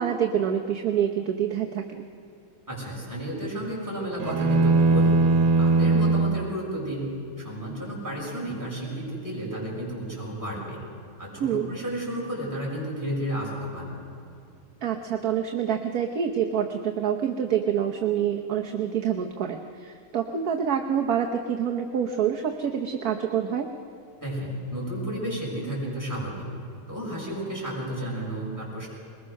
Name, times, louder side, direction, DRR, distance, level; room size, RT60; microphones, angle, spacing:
voice 1, 0.0-2.1 11.4-11.7 14.8-23.7, right 8 dB, 55° right, 3 dB, 1.3 m, -27 dB
voice 2, 2.7-5.2 5.6-7.1 7.4-10.8 11.2-13.9 24.2-26.5 26.9-28.9, right 1 dB, 10° right, -5 dB, 6.3 m, -32 dB
sound 1, 4.2-6.5, right 3 dB, 85° right, 2.0 m, -20 dB
22.0 x 20.5 x 6.5 m, 2.6 s
omnidirectional pair, 2.2 m